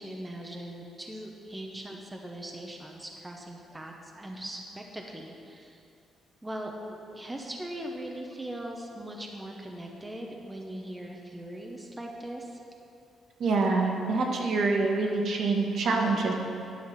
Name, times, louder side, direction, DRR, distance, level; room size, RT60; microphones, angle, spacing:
voice 1, 0.0-5.8 6.4-12.6, right 1 dB, 15° right, 0 dB, 1.0 m, -40 dB
voice 2, 13.4-16.3, right 3 dB, 60° right, 0 dB, 1.4 m, -26 dB
10.5 x 5.8 x 5.9 m, 2.6 s
cardioid pair, 90°, 0 cm